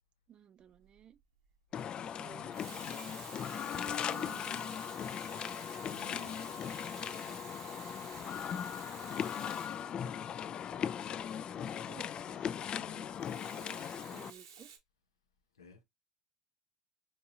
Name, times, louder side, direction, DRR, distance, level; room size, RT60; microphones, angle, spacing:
voice 1, 0.3-1.2 2.2-2.7 3.5-4.9 11.1-13.1 13.7-14.7, right 9 dB, 40° right, 0.4 m, -56 dB
Water tap faucet / Sink (filling or washing), 0.7-1.0 2.3-10.5 13.2-14.8, right 7 dB, 80° right, 0.8 m, -52 dB
sound 1, 1.7-14.3, left 8 dB, 40° left, 0.3 m, -39 dB
voice 2, 5.9-6.7 15.5-15.8, left 5 dB, 90° left, 0.7 m, -57 dB
4.4 x 2.7 x 2.6 m
hypercardioid pair, 75°, 2 cm